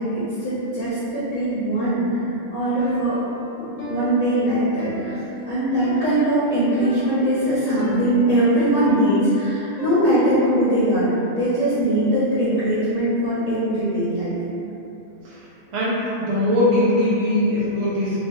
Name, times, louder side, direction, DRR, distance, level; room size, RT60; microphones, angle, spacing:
voice 1, 0.0-3.2 3.6-5.2 5.5-11.1 11.4-14.3, right 1 dB, 45° left, -12 dB, 0.8 m, -21 dB
Piano, 2.8-10.6, equal, 70° left, 1.1 m, -36 dB
voice 2, 15.7-18.3, left 1 dB, 35° right, -8 dB, 0.5 m, -21 dB
2.9 x 2.2 x 2.9 m, 2.9 s
omnidirectional pair, 1.4 m